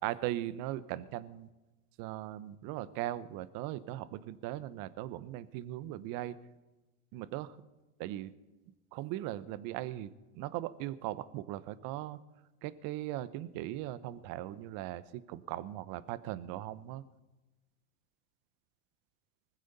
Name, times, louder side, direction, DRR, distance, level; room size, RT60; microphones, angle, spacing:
voice 1, 0.0-1.5 2.0-6.4 7.1-7.6 8.0-8.3 8.9-12.2 12.6-17.0, right 14 dB, 50° right, 16 dB, 1.0 m, -39 dB
20.0 x 14.5 x 4.2 m, 1.1 s
hypercardioid pair, 105°, 43 cm